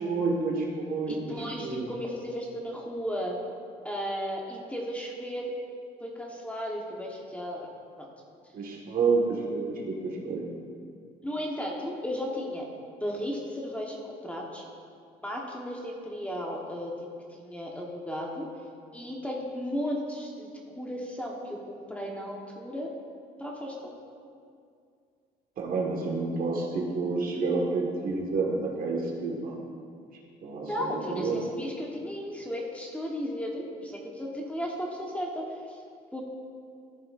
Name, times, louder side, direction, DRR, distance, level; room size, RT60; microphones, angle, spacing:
voice 1, 0.0-1.9 8.5-10.4 25.6-29.6 30.4-31.4, right 4 dB, 55° right, -1 dB, 1.6 m, -29 dB
voice 2, 1.1-3.4 3.8-5.5 6.0-7.7 8.0-8.1 11.2-12.7 13.0-14.6 15.2-16.9 17.3-18.5 18.9-20.5 20.8-21.6 21.9-22.9 23.4-23.7 30.6-35.8 36.1-36.2, equal, 10° left, -2 dB, 1.2 m, -35 dB
14.0 x 7.7 x 2.5 m, 2.3 s
cardioid pair, 110°, 17 cm